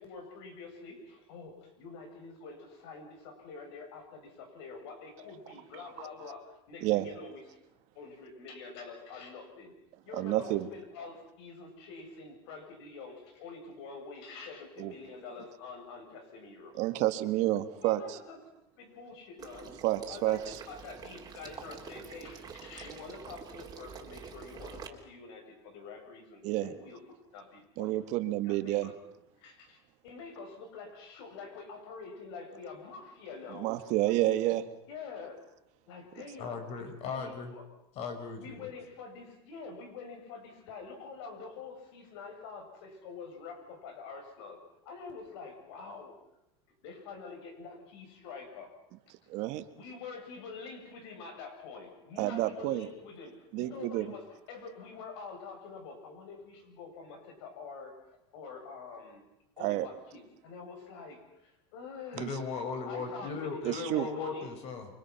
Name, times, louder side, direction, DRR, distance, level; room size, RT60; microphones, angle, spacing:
voice 1, 0.0-7.4 7.9-9.7 10.0-16.8 17.8-18.4 18.8-19.8 20.1-27.0 27.3-28.0 28.4-28.9 29.4-33.7 34.0-34.6 34.9-35.4 35.9-37.6 38.4-46.1 46.8-48.7 49.7-59.2 59.6-62.2 62.9-64.5, left 4 dB, 75° left, 4 dB, 8.0 m, -46 dB
voice 2, 10.1-10.7 14.8-14.9 16.8-18.2 19.8-20.6 26.4-26.7 27.8-28.9 33.5-34.6 49.3-49.6 52.2-52.9 53.5-54.1 59.6-59.9 62.2-62.3 63.6-64.1, right 16 dB, 55° right, 11 dB, 1.7 m, -29 dB
Water / Liquid, 19.4-24.9, right 6 dB, 25° right, 3.8 m, -47 dB
voice 3, 36.4-37.5 38.0-38.7 62.1-64.9, left 4 dB, 50° left, 6 dB, 5.7 m, -37 dB
29.0 x 24.5 x 5.9 m, 0.86 s
supercardioid pair, 130°, 14 cm